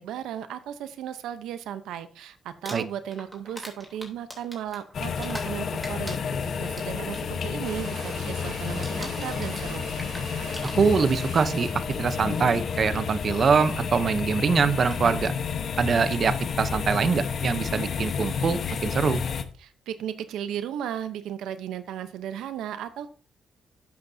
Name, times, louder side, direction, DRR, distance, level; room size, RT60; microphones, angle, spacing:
voice 1, 0.0-6.2 6.6-9.9 19.6-23.1, right 10 dB, 85° right, 12 dB, 0.7 m, -35 dB
Crumpling crinkling, 2.5-5.6 5.8-7.2 7.6-7.9 8.2-8.5 8.8-11.2 12.2-12.3 14.2-14.3 14.8-15.0, equal, 5° right, 3.1 m, -42 dB
sound 1, 4.9-19.4, left 6 dB, 55° left, 1.0 m, -30 dB
sound 2, 7.6-11.8, right 4 dB, 60° right, 3.8 m, -42 dB
voice 2, 10.8-15.3 15.8-19.2, right 5 dB, 45° right, 12 dB, 0.7 m, -24 dB
11.5 x 8.2 x 2.7 m, 0.40 s
cardioid pair, 90°, 0 cm